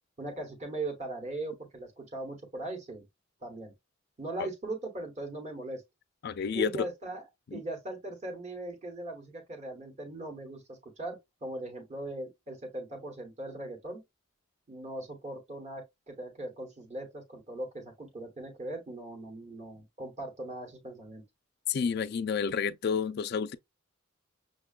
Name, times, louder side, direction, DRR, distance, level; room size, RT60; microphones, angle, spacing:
voice 1, 0.2-3.0 3.4-3.7 4.2-5.8 6.5-7.2 7.5-14.0 14.7-21.2, right 2 dB, 35° right, 1.1 m, -39 dB
voice 2, 6.2-6.9 7.5-7.6 21.7-23.6, left 6 dB, 50° left, 0.3 m, -30 dB
6.4 x 2.2 x 2.4 m
head